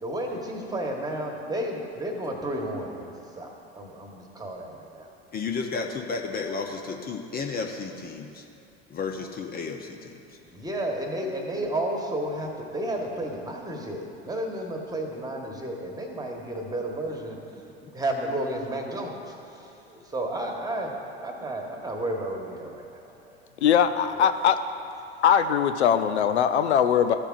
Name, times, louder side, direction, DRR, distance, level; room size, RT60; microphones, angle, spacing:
voice 1, 0.0-5.1 5.8-5.9 10.4-17.4 17.9-23.3, right 1 dB, 10° right, 1 dB, 1.3 m, -32 dB
voice 2, 5.3-8.4 8.9-10.4 17.8-17.9, left 4 dB, 30° left, 3 dB, 0.6 m, -33 dB
voice 3, 23.6-24.6 25.2-27.1, left 8 dB, 85° left, 10 dB, 0.5 m, -21 dB
14.0 x 6.7 x 2.5 m, 2.7 s
hypercardioid pair, 80°, 33 cm